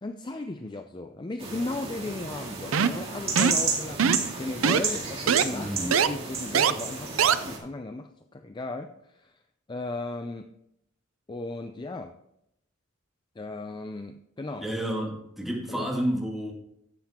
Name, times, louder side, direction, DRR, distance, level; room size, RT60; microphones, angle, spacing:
voice 1, 0.0-9.4 9.7-10.5 11.3-12.1 13.4-14.7 15.7-15.9, left 2 dB, 20° left, 7 dB, 0.4 m, -36 dB
sound 1, 1.4-7.6, right 4 dB, 30° right, 2.4 m, -32 dB
sound 2, 2.7-3.0 3.4-3.6 4.0-4.3 4.6-4.8 5.3-5.4 5.9-6.1 6.5-6.7 7.2-7.3, right 7 dB, 85° right, 0.5 m, -21 dB
voice 2, 5.5-5.9 14.6-16.5, right 1 dB, ahead, -3 dB, 2.1 m, -30 dB
11.5 x 7.6 x 3.6 m, 0.78 s
head